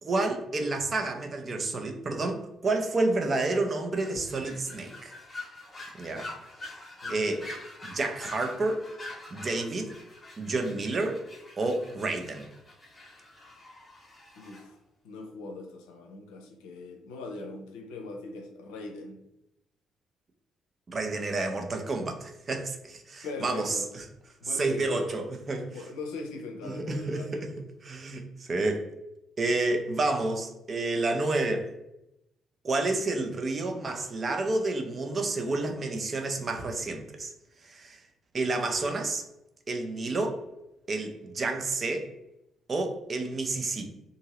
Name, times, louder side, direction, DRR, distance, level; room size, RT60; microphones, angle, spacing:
voice 1, 0.0-5.1 5.9-6.3 7.1-7.5 7.8-8.8 9.3-9.9 10.4-11.2 11.6-12.5 20.9-23.8 24.5-25.7 26.6-27.5 27.8-28.8 29.4-31.7 32.6-37.3 37.6-38.0 38.3-39.2 39.7-40.4 40.9-42.1 42.7-43.9, right 2 dB, 40° right, 5 dB, 0.6 m, -30 dB
sound 1, 4.0-14.6, left 2 dB, 25° left, 0.9 m, -45 dB
voice 2, 14.4-14.8 15.0-19.2 23.2-23.9 24.4-25.0 25.7-27.5, left 3 dB, 70° left, 3 dB, 0.5 m, -40 dB
2.7 x 2.6 x 2.9 m, 0.87 s
figure-of-eight pair, 40°, 0 cm